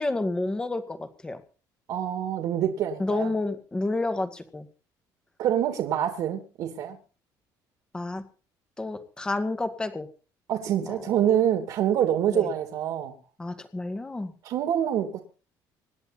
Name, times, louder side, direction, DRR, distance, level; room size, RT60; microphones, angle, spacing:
voice 1, 0.0-1.4 3.0-4.7 7.9-8.2 8.8-10.1 10.9-11.2 12.3-12.5 13.4-14.3, left 2 dB, 10° left, 8 dB, 2.0 m, -30 dB
voice 2, 1.9-3.3 5.4-7.0 10.5-13.1 14.4-15.2, right 10 dB, 60° right, 5 dB, 2.7 m, -26 dB
26.5 x 10.5 x 4.2 m, 0.37 s
cardioid pair, 170°, 7 cm